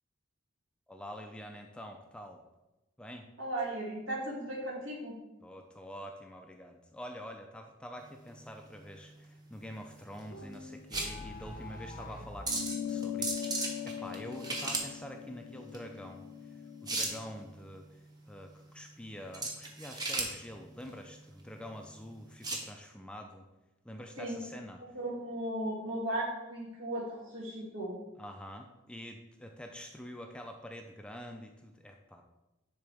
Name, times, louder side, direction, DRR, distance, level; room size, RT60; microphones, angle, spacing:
voice 1, 0.9-2.4 3.0-3.3 5.4-16.2 16.8-23.5 23.8-24.8 28.2-32.2, equal, 5° left, 3 dB, 0.4 m, -46 dB
voice 2, 3.4-5.2 24.2-24.4 24.9-27.9, right 1 dB, 75° right, -4 dB, 2.3 m, -36 dB
sound 1, 8.0-22.7, right 2 dB, 20° right, 0.9 m, -39 dB
sound 2, 10.3-12.5, left 2 dB, 45° left, 0.7 m, -45 dB
sound 3, 12.5-17.3, left 9 dB, 80° left, 0.4 m, -40 dB
9.9 x 4.0 x 3.5 m, 1.0 s
head